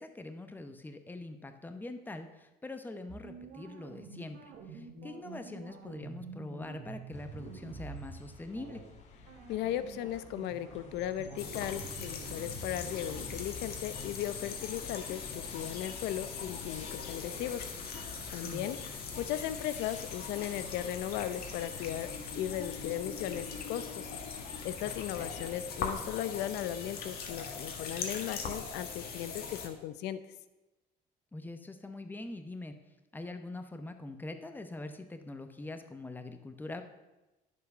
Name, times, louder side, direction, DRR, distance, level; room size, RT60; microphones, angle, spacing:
voice 1, 0.0-8.8 18.3-18.7 24.9-25.3 31.3-32.8 33.1-36.8, left 2 dB, 10° left, 8 dB, 0.9 m, -43 dB
sound 1, 3.1-8.2 8.6-8.8 9.3-13.7, right 4 dB, 90° right, 1.8 m, -47 dB
sound 2, 7.1-25.6, left 3 dB, 45° left, 1.5 m, -52 dB
voice 2, 9.5-17.7 18.3-18.8 19.2-24.1 24.6-30.2, left 11 dB, 85° left, 13 dB, 0.7 m, -37 dB
sound 3, 11.4-29.7, left 5 dB, 65° left, 1.6 m, -41 dB
10.5 x 7.0 x 5.4 m, 1.1 s
cardioid pair, 110°, 17 cm